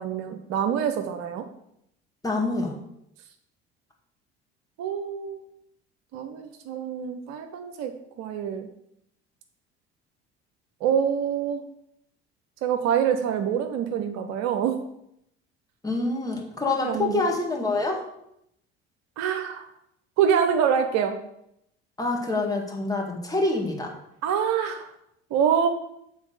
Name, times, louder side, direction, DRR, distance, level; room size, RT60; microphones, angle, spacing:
voice 1, 0.0-1.4 4.8-5.4 6.1-7.9 8.2-8.7 10.8-11.6 12.6-14.8 16.7-17.2 19.2-19.7 20.2-21.2 24.2-24.9 25.3-25.7, right 8 dB, 55° right, 7 dB, 0.8 m, -25 dB
voice 2, 2.2-2.7 15.8-18.0 22.0-23.9, left 3 dB, 10° left, 1 dB, 1.9 m, -26 dB
7.3 x 4.1 x 6.4 m, 0.77 s
figure-of-eight pair, 60°, 33 cm